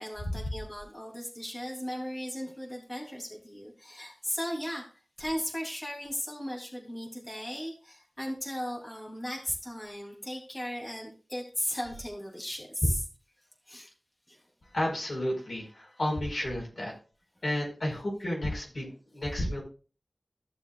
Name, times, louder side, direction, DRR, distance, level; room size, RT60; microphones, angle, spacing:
voice 1, 0.0-13.0 13.7-13.9 14.3-14.4, equal, 20° left, -1 dB, 3.0 m, -37 dB
voice 2, 14.7-17.0 17.4-19.6, left 1 dB, 70° left, -1 dB, 4.8 m, -31 dB
15.5 x 6.8 x 2.4 m, 0.35 s
wide cardioid pair, 50°, 0 cm